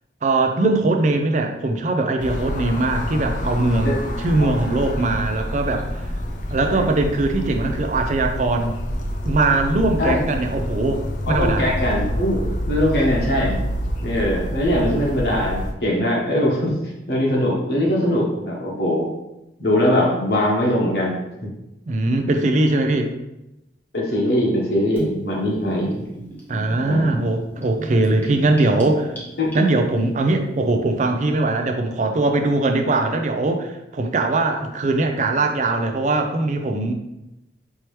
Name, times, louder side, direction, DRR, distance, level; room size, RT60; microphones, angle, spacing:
voice 1, 0.2-5.9 6.5-8.7 9.2-11.7 21.9-23.1 26.5-29.1 29.5-36.9, right 2 dB, 40° right, 5 dB, 0.4 m, -21 dB
sound 1, 2.2-15.7, equal, 45° left, 0.5 m, -27 dB
voice 2, 11.3-13.7 14.0-16.7 17.1-19.1 19.6-21.1 23.9-26.0 26.8-27.1 28.8-28.9 29.4-29.5, left 1 dB, 60° left, -3 dB, 1.1 m, -21 dB
Gurgling / Bathtub (filling or washing), 25.0-30.0, right 2 dB, 10° left, 0.9 m, -35 dB
4.6 x 3.0 x 3.1 m, 0.93 s
head